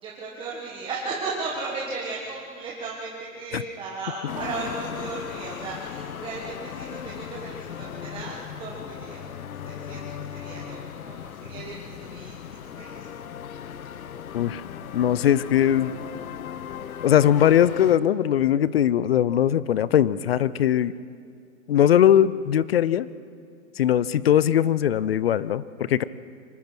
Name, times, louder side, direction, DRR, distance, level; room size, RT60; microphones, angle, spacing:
voice 1, 0.0-9.3 9.6-12.4 12.8-13.1, right 3 dB, 10° right, -4 dB, 1.5 m, -35 dB
sound 1, 4.3-18.0, left 8 dB, 85° left, 1.1 m, -37 dB
voice 2, 14.9-15.9 17.0-20.9 21.7-23.1 23.8-26.0, left 10 dB, 45° left, 18 dB, 0.6 m, -20 dB
24.5 x 19.0 x 6.2 m, 2.3 s
hypercardioid pair, 160°, 42 cm